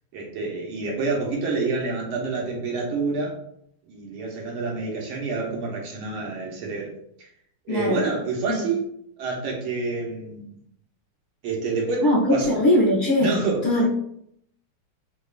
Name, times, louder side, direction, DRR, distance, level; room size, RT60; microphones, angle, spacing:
voice 1, 0.1-3.4 3.9-6.9 7.2-7.3 7.7-8.8 9.2-10.6 11.4-12.6 13.2-13.7, right 4 dB, 90° right, -2 dB, 1.7 m, -28 dB
voice 2, 7.7-8.0 8.5-8.7 12.0-13.9, left 1 dB, 60° left, -7 dB, 0.9 m, -21 dB
5.2 x 2.1 x 2.4 m, 0.71 s
omnidirectional pair, 2.3 m